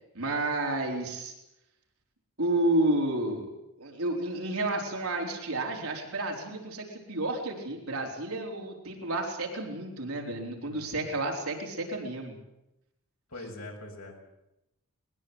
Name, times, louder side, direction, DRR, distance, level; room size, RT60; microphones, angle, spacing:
voice 1, 0.1-1.3 2.4-3.5 3.8-12.3, right 2 dB, 80° right, 1 dB, 4.3 m, -31 dB
voice 2, 10.7-11.1 13.3-14.3, left 2 dB, 80° left, 1 dB, 6.9 m, -43 dB
21.0 x 20.5 x 8.1 m, 0.88 s
head